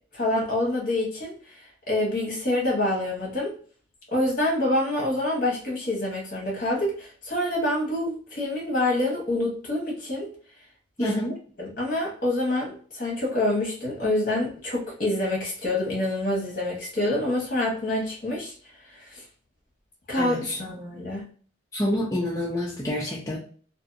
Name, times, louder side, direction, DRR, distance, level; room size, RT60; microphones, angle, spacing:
voice 1, 0.1-3.5 4.1-10.3 11.0-11.1 11.6-18.5 18.9-19.2 20.1-21.2, left 1 dB, 45° left, -1 dB, 1.2 m, -27 dB
voice 2, 11.0-11.4 20.2-20.6 21.7-23.4, left 1 dB, 15° left, -6 dB, 0.5 m, -27 dB
2.6 x 2.6 x 2.6 m, 0.43 s
head